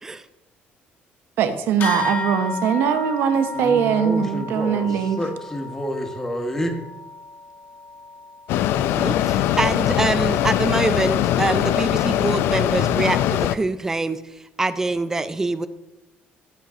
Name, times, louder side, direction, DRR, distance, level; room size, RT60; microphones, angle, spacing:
voice 1, 1.4-5.2, right 8 dB, 65° right, 9 dB, 1.0 m, -21 dB
sound 1, 1.8-11.6, left 3 dB, 55° left, 1.5 m, -34 dB
voice 2, 3.5-4.9 5.2-6.7, equal, 10° left, 5 dB, 1.2 m, -28 dB
Mechanisms, 8.5-13.6, left 12 dB, 75° left, 0.4 m, -21 dB
voice 3, 8.8-14.2 14.6-15.7, right 2 dB, 10° right, 13 dB, 0.4 m, -24 dB
15.0 x 7.2 x 3.7 m, 0.94 s
cardioid pair, 170°, 4 cm